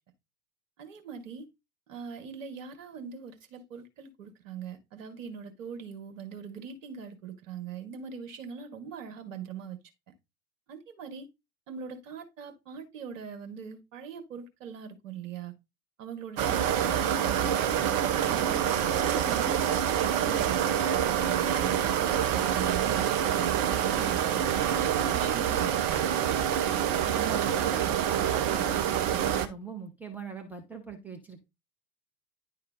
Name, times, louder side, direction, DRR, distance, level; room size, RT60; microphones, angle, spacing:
voice 1, 0.8-1.4 1.9-9.8 10.7-11.3 11.7-15.5 16.0-17.9 18.3-19.6 19.9-24.4 24.7-26.1, right 7 dB, 60° right, 1.7 m, -41 dB
sound 1, 16.4-29.5, right 9 dB, 40° right, 0.9 m, -26 dB
voice 2, 27.0-31.5, right 6 dB, 5° right, 0.3 m, -41 dB
10.5 x 3.8 x 3.6 m
figure-of-eight pair, 85°, 45 cm